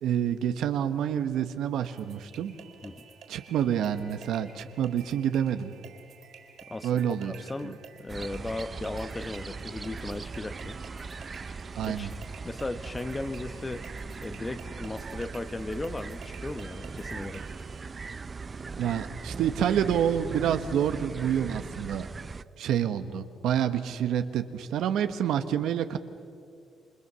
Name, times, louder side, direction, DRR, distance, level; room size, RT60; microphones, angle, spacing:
voice 1, 0.0-2.5 3.3-5.7 6.8-7.3 7.6-7.7 11.8-12.1 18.8-22.1 22.6-26.0, right 9 dB, 80° right, 9 dB, 1.3 m, -28 dB
sound 1, 1.8-17.8, right 6 dB, 65° right, 4.3 m, -51 dB
voice 2, 7.2-7.7 8.0-10.8 11.8-12.1 12.4-13.8 14.2-17.4, left 2 dB, 20° left, 11 dB, 1.3 m, -36 dB
sound 2, 8.1-22.4, right 4 dB, 35° right, 0.6 m, -39 dB
28.5 x 25.5 x 7.0 m, 2.4 s
cardioid pair, 90°, 0 cm